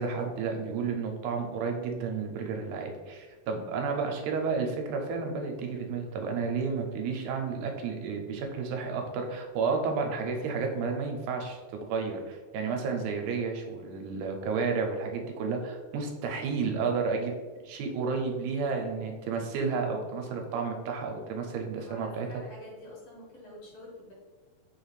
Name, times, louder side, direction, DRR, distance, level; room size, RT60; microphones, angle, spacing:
voice 1, 0.0-17.3 17.6-22.3, right 5 dB, 80° right, 3 dB, 1.9 m, -31 dB
voice 2, 21.8-24.1, left 1 dB, 70° left, -3 dB, 1.7 m, -47 dB
5.2 x 2.4 x 3.1 m, 1.3 s
omnidirectional pair, 3.4 m